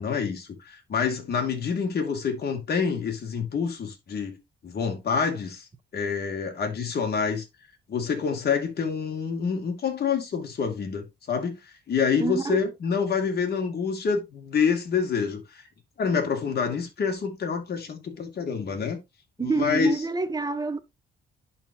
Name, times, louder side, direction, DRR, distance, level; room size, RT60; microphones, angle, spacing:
voice 1, 0.0-4.4 4.6-5.7 5.9-7.5 7.9-11.6 11.9-15.6 16.0-19.0 19.4-19.9, left 6 dB, 55° left, 2.5 m, -27 dB
voice 2, 12.2-12.6 19.4-20.8, right 4 dB, 20° right, 1.0 m, -27 dB
11.0 x 4.3 x 2.8 m
cardioid pair, 90°, 20 cm